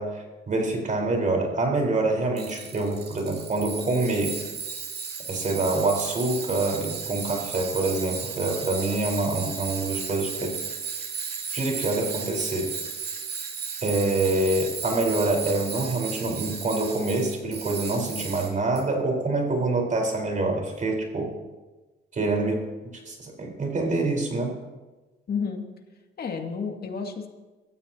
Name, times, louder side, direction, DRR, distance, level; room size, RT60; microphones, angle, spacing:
voice 1, 0.0-4.4 5.3-10.6 11.5-12.7 13.8-21.3 22.1-22.6 23.1-24.5, right 2 dB, 40° right, 1 dB, 4.2 m, -26 dB
Tools, 2.4-18.8, right 6 dB, 55° right, 2.4 m, -35 dB
voice 2, 25.3-25.6 26.2-27.3, left 5 dB, 50° left, 3 dB, 2.2 m, -30 dB
24.5 x 14.0 x 2.9 m, 1.2 s
cardioid pair, 90°, 20 cm